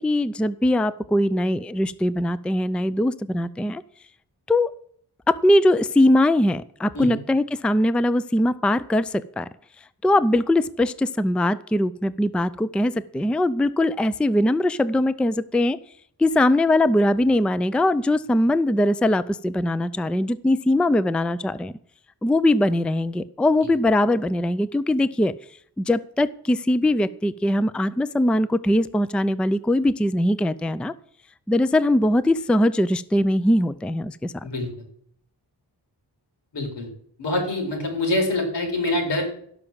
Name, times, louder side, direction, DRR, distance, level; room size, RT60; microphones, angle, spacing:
voice 1, 0.0-3.8 4.5-4.7 5.3-9.5 10.0-15.8 16.2-21.7 22.2-25.3 25.8-30.9 31.5-34.3, left 1 dB, 5° left, 16 dB, 0.4 m, -21 dB
voice 2, 36.5-36.9 37.2-39.2, left 2 dB, 90° left, 2 dB, 4.6 m, -25 dB
17.0 x 5.9 x 7.2 m, 0.66 s
wide cardioid pair, 115°, 41 cm